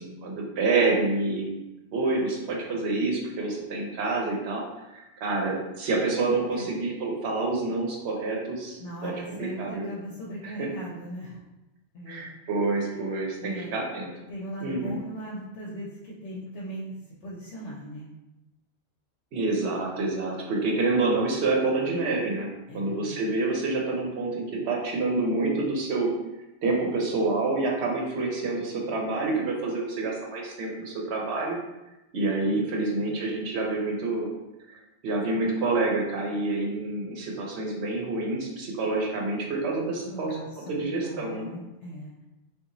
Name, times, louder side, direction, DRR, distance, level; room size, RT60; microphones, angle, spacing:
voice 1, 0.0-1.5 1.9-9.9 10.4-10.7 12.1-14.1 14.6-15.0 19.3-22.5 22.7-26.1 26.6-31.6 32.1-34.3 34.7-40.4 40.7-41.5, right 3 dB, 75° right, -1 dB, 0.9 m, -28 dB
voice 2, 8.8-11.4 11.9-12.3 13.4-13.7 14.3-18.1 22.7-23.2 32.4-33.1 40.1-42.2, equal, 85° left, -5 dB, 0.9 m, -39 dB
2.9 x 2.3 x 2.5 m, 1.0 s
omnidirectional pair, 1.2 m